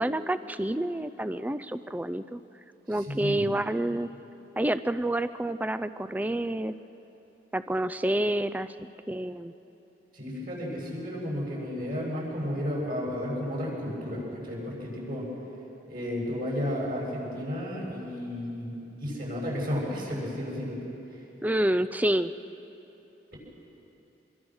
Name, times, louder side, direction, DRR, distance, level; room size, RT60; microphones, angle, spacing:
voice 1, 0.0-2.4 2.9-4.1 4.6-6.8 7.5-8.7 9.1-9.5 21.4-22.3, right 1 dB, 10° right, 12 dB, 0.4 m, -28 dB
voice 2, 2.9-3.5 10.1-15.3 15.9-20.8 21.1-21.2, equal, 50° right, -3 dB, 7.2 m, -33 dB
25.0 x 23.5 x 6.4 m, 2.9 s
head